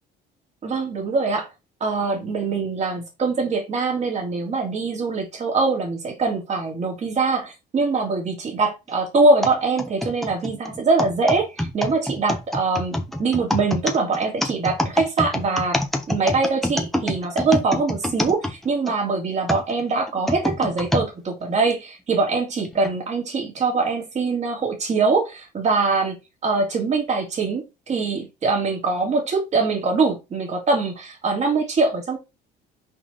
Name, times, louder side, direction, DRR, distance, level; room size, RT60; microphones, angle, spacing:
voice 1, 0.6-1.5 1.8-26.1 26.4-32.2, right 3 dB, 45° right, 3.1 m, -23 dB
sound 1, 9.4-19.0 19.5-21.1 21.7-21.8 22.7-22.9, left 1 dB, ahead, 1.2 m, -26 dB
5.9 x 4.7 x 4.2 m
cardioid pair, 110°, 17 cm